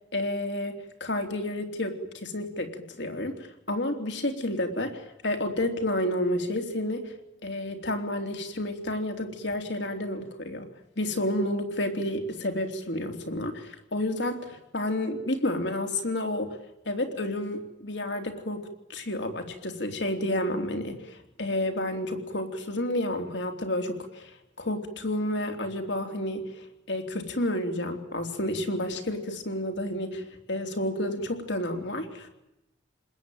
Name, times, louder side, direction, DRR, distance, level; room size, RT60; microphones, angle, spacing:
voice 1, 0.1-7.1 7.4-10.7 11.0-16.6 16.8-32.3, left 1 dB, 65° left, 6 dB, 3.4 m, -30 dB
29.5 x 20.5 x 9.3 m, 0.90 s
head